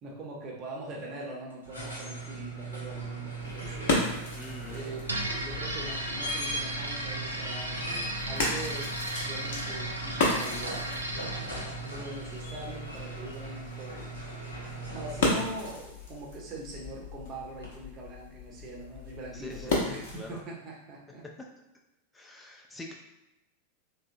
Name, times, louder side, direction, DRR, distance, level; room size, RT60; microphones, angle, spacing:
voice 1, 0.0-4.0 4.7-8.9 9.2-14.2 14.9-21.2, right 2 dB, 35° right, -3 dB, 0.8 m, -42 dB
sound 1, 1.5-15.9 17.6-17.7, right 2 dB, 80° left, 0.8 m, -39 dB
sound 2, 3.3-20.4, left 2 dB, 50° left, 0.8 m, -35 dB
voice 2, 4.3-4.8 19.3-20.4 22.1-22.9, left 2 dB, 10° left, 0 dB, 0.5 m, -44 dB
sound 3, 5.0-12.9, right 1 dB, 80° right, 0.4 m, -36 dB
3.5 x 2.1 x 2.6 m, 0.96 s
figure-of-eight pair, 90°, 0 cm